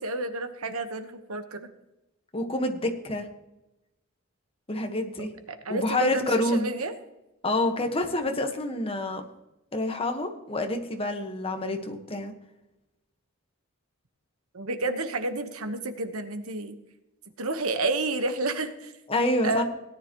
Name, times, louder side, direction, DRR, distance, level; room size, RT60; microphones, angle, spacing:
voice 1, 0.0-1.7 5.2-6.9 14.5-16.8 17.4-18.9 19.4-19.6, right 2 dB, 90° right, 9 dB, 1.2 m, -30 dB
voice 2, 2.3-3.3 4.7-5.3 5.7-6.7 7.4-9.2 9.7-12.3 19.1-19.6, left 1 dB, 25° left, 5 dB, 1.4 m, -27 dB
18.0 x 10.0 x 3.1 m, 0.95 s
head